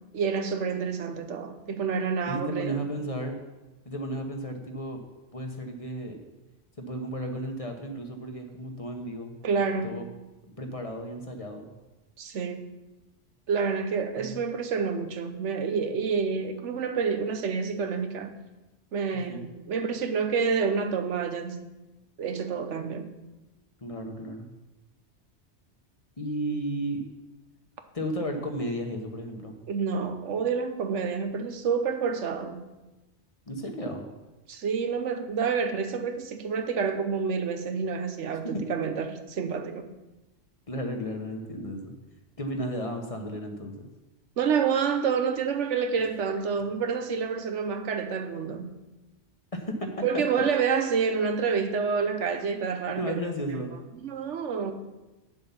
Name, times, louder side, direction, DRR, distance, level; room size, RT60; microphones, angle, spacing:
voice 1, 0.1-2.8 9.4-10.0 12.2-12.7 13.5-18.3 18.9-21.7 22.2-23.2 29.7-32.7 34.5-39.9 44.4-48.8 50.0-53.2 53.9-54.7, right 6 dB, 85° right, 1.2 m, -28 dB
voice 2, 2.3-3.3 3.8-5.0 5.3-6.2 6.8-9.3 9.8-10.1 10.4-11.7 14.1-14.5 19.1-19.5 23.8-24.5 26.2-27.0 27.9-29.5 33.5-34.1 38.5-38.8 40.7-41.9 42.4-43.9 49.5-50.2 53.0-53.8, equal, 30° left, 1.1 m, -34 dB
8.7 x 7.3 x 5.7 m
omnidirectional pair, 1.2 m